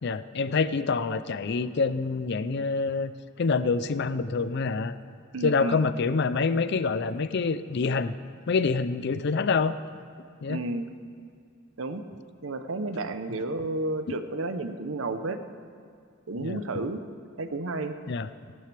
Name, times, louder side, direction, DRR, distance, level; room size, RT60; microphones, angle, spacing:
voice 1, 0.0-3.1 3.4-4.9 5.4-8.1 8.5-9.7 10.4-10.6 16.4-16.6 18.1-18.3, left 4 dB, 50° left, 13 dB, 0.4 m, -26 dB
voice 2, 5.3-5.9 10.5-10.9 11.8-12.0 12.4-15.4 16.3-17.0 17.4-17.9, right 2 dB, 70° right, 9 dB, 0.8 m, -31 dB
17.5 x 12.5 x 3.4 m, 2.3 s
head